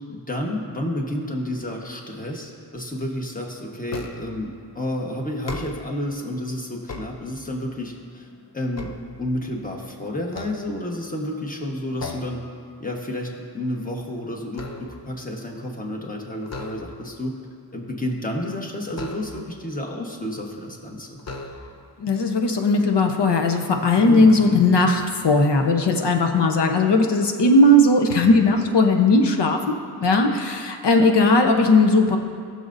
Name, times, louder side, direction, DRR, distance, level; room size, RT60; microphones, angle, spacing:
voice 1, 0.1-8.3 8.5-8.9 9.2-12.4 12.8-17.4 17.7-21.2 24.0-24.3, left 1 dB, 20° left, 0 dB, 1.2 m, -30 dB
sound 1, 3.9-4.5 5.3-6.1 6.6-7.7 8.2-9.7 10.3-11.2 12.0-12.5 12.9-13.1 13.5-15.2 16.4-17.2 18.9-19.7 20.5-20.6 21.2-22.0, left 3 dB, 40° left, 0.7 m, -38 dB
voice 2, 22.0-32.2, left 2 dB, 85° left, 4 dB, 1.0 m, -18 dB
19.5 x 6.7 x 2.6 m, 2.2 s
wide cardioid pair, 155°, 40 cm